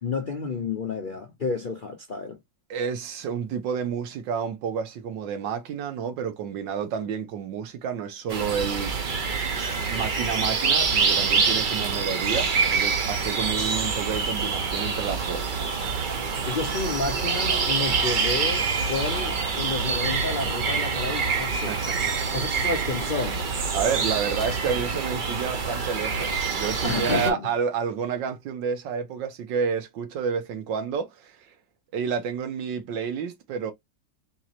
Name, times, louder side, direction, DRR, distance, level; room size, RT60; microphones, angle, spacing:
voice 1, 0.0-2.4 16.5-22.0 22.3-23.4 26.8-27.5, left 4 dB, 55° left, 0.5 m, -30 dB
voice 2, 2.7-9.2 9.9-15.5 21.7-22.0 23.7-31.5 31.9-33.7, right 7 dB, 80° right, 1.6 m, -30 dB
sound 1, 8.3-27.3, right 5 dB, 55° right, 0.5 m, -26 dB
4.5 x 3.0 x 2.8 m
omnidirectional pair, 2.0 m